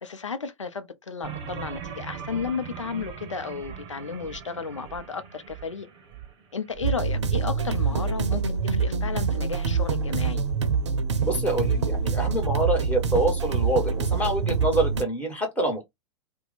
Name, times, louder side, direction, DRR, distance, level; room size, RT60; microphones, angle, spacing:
voice 1, 0.0-5.9 6.5-10.4, left 5 dB, 80° left, 0.6 m, -33 dB
sound 1, 1.2-6.9, right 7 dB, 30° right, 0.8 m, -40 dB
sound 2, 6.8-15.0, right 5 dB, 65° right, 0.6 m, -25 dB
voice 2, 11.2-15.8, right 2 dB, 10° left, 1.3 m, -26 dB
2.7 x 2.2 x 3.9 m
figure-of-eight pair, 100°, 16 cm